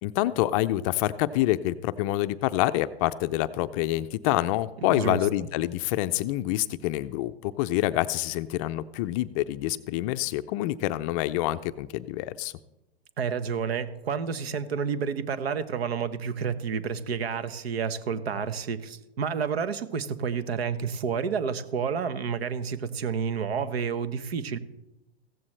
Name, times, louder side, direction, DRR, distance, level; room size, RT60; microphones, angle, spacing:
voice 1, 0.0-12.5, left 15 dB, 35° left, 12 dB, 0.4 m, -27 dB
voice 2, 4.9-5.2 13.2-24.6, right 6 dB, 75° right, 13 dB, 1.1 m, -30 dB
15.5 x 14.0 x 3.3 m, 0.96 s
hypercardioid pair, 120°, 32 cm